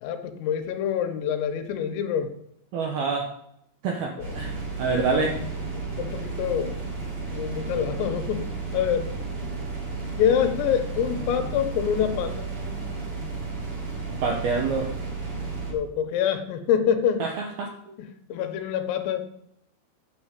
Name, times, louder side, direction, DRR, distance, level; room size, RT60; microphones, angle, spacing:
voice 1, 0.0-2.3 4.2-4.4 5.3-5.5 5.7-6.8 7.3-8.5 8.7-9.1 10.2-12.5 15.7-17.3 18.0-19.3, left 8 dB, 80° left, 7 dB, 3.7 m, -26 dB
voice 2, 2.7-3.3 3.8-5.4 14.2-14.9 17.2-17.3 17.6-17.9, right 4 dB, 75° right, 1 dB, 2.3 m, -26 dB
sound 1, 4.2-15.7, right 3 dB, 35° right, 4.1 m, -33 dB
9.3 x 6.9 x 8.2 m, 0.74 s
omnidirectional pair, 6.0 m